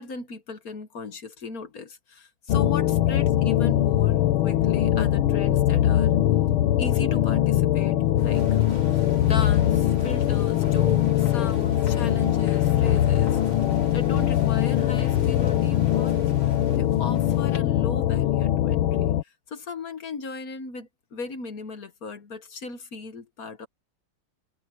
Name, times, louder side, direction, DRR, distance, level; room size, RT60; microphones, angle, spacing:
voice 1, 0.0-6.2 6.8-8.6 8.9-13.4 13.9-16.2 16.4-23.7, left 4 dB, 50° left, 1.6 m, -37 dB
sound 1, 2.5-19.2, left 12 dB, 85° left, 1.8 m, -22 dB
sound 2, 8.2-17.6, left 5 dB, 65° left, 4.0 m, -47 dB
sound 3, 8.3-16.8, right 5 dB, 85° right, 3.4 m, -49 dB
omnidirectional pair, 2.3 m